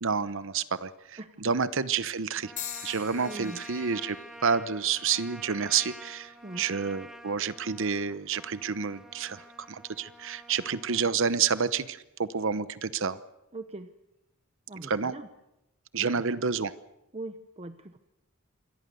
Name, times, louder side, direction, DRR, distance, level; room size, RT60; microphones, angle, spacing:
voice 1, 0.0-2.5 2.8-4.2 4.4-13.2 14.8-15.1 15.9-16.7, right 6 dB, 60° right, 14 dB, 0.9 m, -29 dB
Trumpet, 2.4-11.1, equal, ahead, 2.0 m, -48 dB
sound 1, 2.6-6.7 7.4-7.8 8.8-9.0, left 9 dB, 40° left, 3.9 m, -45 dB
voice 2, 3.2-3.6 6.4-6.7 13.5-13.9 14.7-15.3 16.0-16.2 17.1-18.0, right 2 dB, 30° right, 9 dB, 0.9 m, -41 dB
27.5 x 22.5 x 6.9 m, 0.88 s
head